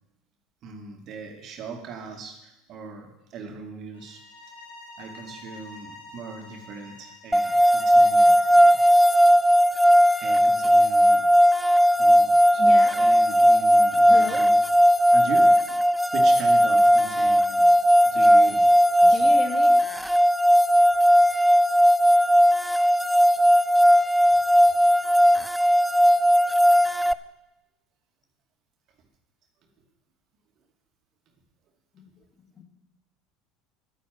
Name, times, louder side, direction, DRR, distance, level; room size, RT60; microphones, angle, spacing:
voice 1, 0.6-4.2 5.0-8.8 10.2-11.3 11.9-14.5 14.9-15.8 16.1-17.7 18.0-18.7 19.0-19.3 23.8-23.9 24.5-24.8, right 4 dB, 50° right, 4 dB, 2.6 m, -40 dB
sound 1, 3.9-9.1, left 2 dB, 85° left, 3.0 m, -48 dB
sound 2, 7.3-27.1, equal, ahead, 0.6 m, -18 dB
voice 2, 12.6-13.0 14.1-14.4 19.1-19.8 31.9-32.6, left 3 dB, 40° left, 4 dB, 2.6 m, -35 dB
11.5 x 10.0 x 7.8 m, 0.91 s
hypercardioid pair, 75°, 0 cm